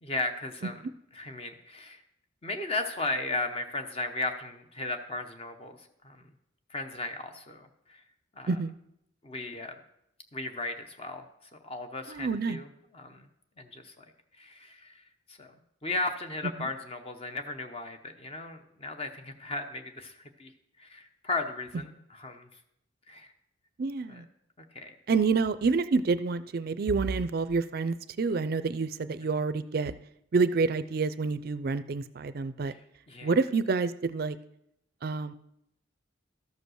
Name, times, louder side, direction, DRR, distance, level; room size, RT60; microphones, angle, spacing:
voice 1, 0.0-0.8 1.1-2.0 2.4-6.3 6.7-8.0 8.4-8.5 9.2-9.8 10.3-11.3 11.6-12.7 12.9-13.3 13.6-14.0 14.4-15.0 15.3-20.5 20.8-22.5 23.1-23.3 24.1-24.2 24.7-24.9 32.7-32.8 33.1-33.3, left 2 dB, 30° left, 6 dB, 0.8 m, -36 dB
voice 2, 12.1-12.6 16.6-16.7 23.8-24.2 25.1-29.9 30.3-32.7 33.2-34.4 35.0-35.3, right 4 dB, 50° right, 13 dB, 0.4 m, -28 dB
13.0 x 5.3 x 6.3 m, 0.79 s
head